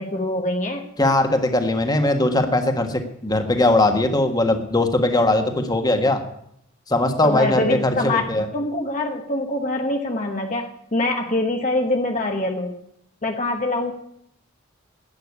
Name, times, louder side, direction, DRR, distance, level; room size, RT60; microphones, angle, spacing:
voice 1, 0.0-0.8 7.2-12.7 13.2-13.9, left 2 dB, 35° left, 3 dB, 1.2 m, -24 dB
voice 2, 1.0-6.2 6.9-8.5, left 2 dB, 20° left, 6 dB, 1.5 m, -20 dB
12.0 x 9.1 x 9.7 m, 0.73 s
head